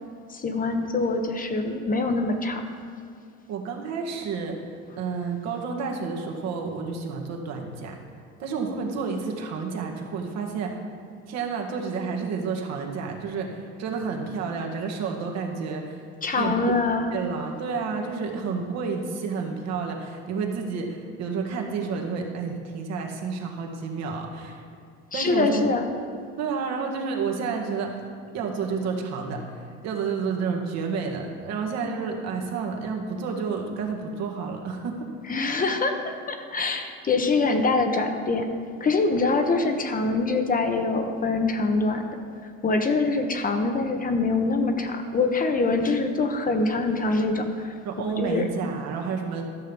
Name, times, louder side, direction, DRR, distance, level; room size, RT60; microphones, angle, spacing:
voice 1, 0.3-2.6 16.2-17.1 25.1-25.8 35.3-38.5 38.8-42.2 42.6-47.7 48.2-48.5, left 3 dB, 30° left, 6 dB, 1.2 m, -24 dB
voice 2, 3.5-4.6 5.0-8.0 8.4-10.8 11.3-16.0 16.4-16.7 17.1-24.6 25.1-25.7 26.4-28.1 28.3-35.1 47.9-49.5, right 5 dB, 65° right, 1 dB, 1.8 m, -30 dB
13.0 x 6.6 x 5.4 m, 2.3 s
supercardioid pair, 95°, 29 cm